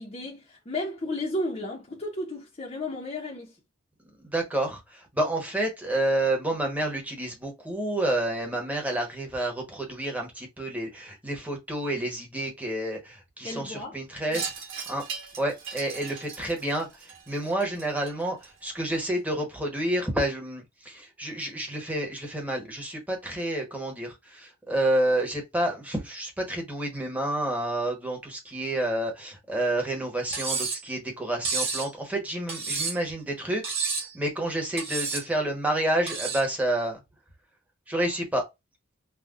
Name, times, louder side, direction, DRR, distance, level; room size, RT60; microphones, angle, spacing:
voice 1, 0.0-3.6 13.4-14.0 14.3-14.4, left 1 dB, 30° left, 0.7 m, -33 dB
voice 2, 4.3-14.5 14.9-15.0 15.4-33.6 34.1-37.0 37.9-38.4, right 1 dB, 5° right, 1.0 m, -29 dB
Wind chime, 14.3-18.9, right 6 dB, 70° right, 1.7 m, -39 dB
Cutlery silverware, 30.3-30.9 31.5-31.9 32.5-33.1 33.6-34.1 34.8-35.3 36.1-36.5, right 4 dB, 30° right, 1.5 m, -30 dB
5.7 x 2.3 x 2.4 m
head